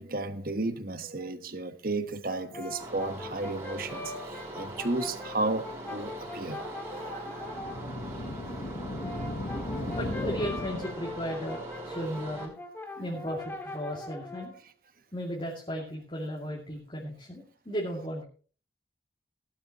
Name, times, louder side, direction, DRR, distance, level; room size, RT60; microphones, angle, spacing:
voice 1, 0.0-7.9 9.8-10.0 13.0-13.1, right 2 dB, 50° right, 1.2 m, -34 dB
Brass instrument, 2.2-7.8 8.8-14.6, left 2 dB, 10° left, 1.8 m, -42 dB
sound 1, 2.8-12.5, right 1 dB, 15° right, 4.5 m, -42 dB
sound 2, 7.4-11.3, left 1 dB, 50° left, 1.1 m, -36 dB
voice 2, 10.0-12.5 13.0-14.5 15.1-18.2, equal, 30° left, 2.5 m, -35 dB
16.5 x 12.0 x 3.0 m
head